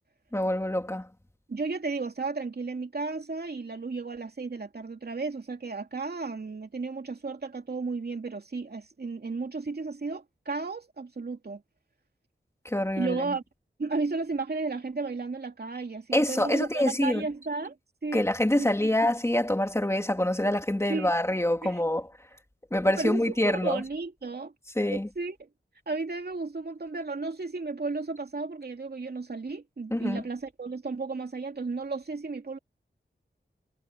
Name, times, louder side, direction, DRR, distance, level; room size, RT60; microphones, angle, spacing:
voice 1, 0.3-1.1 12.6-13.3 16.1-17.2 18.1-22.1 22.7-23.8 24.8-25.1 29.9-30.2, left 1 dB, 15° left, 3.2 m, -26 dB
voice 2, 1.5-11.6 13.0-13.4 13.8-17.8 18.0-18.3 18.6-18.7 20.9-21.1 21.6-21.8 23.0-24.5 24.9-25.5 25.9-32.6, right 3 dB, 60° right, 2.7 m, -33 dB
wide cardioid pair, 75°, 19 cm